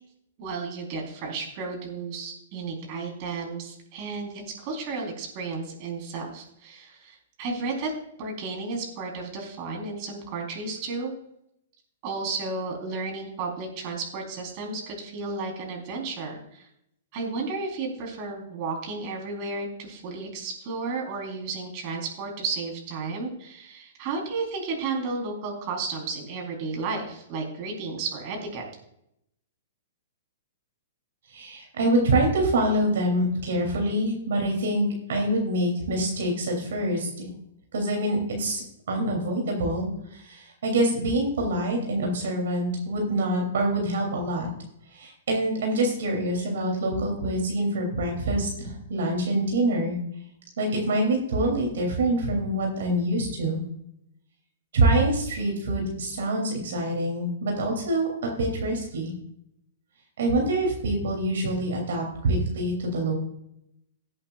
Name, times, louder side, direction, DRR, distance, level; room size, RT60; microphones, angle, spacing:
voice 1, 0.4-7.9 8.2-11.1 12.0-16.7 17.1-28.6, right 4 dB, 40° right, 1 dB, 3.9 m, -33 dB
voice 2, 31.3-37.3 37.7-44.5 44.9-50.0 50.6-53.6 54.7-59.1 60.2-63.2, right 1 dB, 75° right, 1 dB, 3.1 m, -25 dB
18.0 x 8.6 x 2.5 m, 0.77 s
hypercardioid pair, 140°, 0 cm